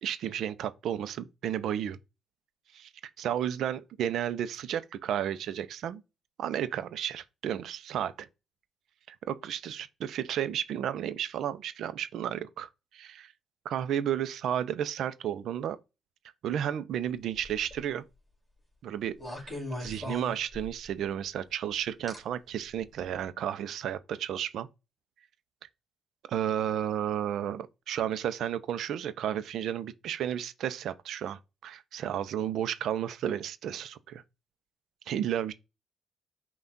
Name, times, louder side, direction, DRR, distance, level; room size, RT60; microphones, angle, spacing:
voice 1, 0.0-2.0 2.7-2.9 3.2-6.0 6.4-8.3 9.1-13.3 13.6-15.8 16.4-18.0 18.8-19.5 19.8-24.7 26.3-34.2 35.1-35.5, right 10 dB, 75° right, 0.5 m, -32 dB
sound 1, 17.4-17.8 19.2-20.9 22.1-22.2 23.0-23.2, left 1 dB, ahead, 2.5 m, -38 dB
5.7 x 2.4 x 3.8 m
cardioid pair, 90°, 0 cm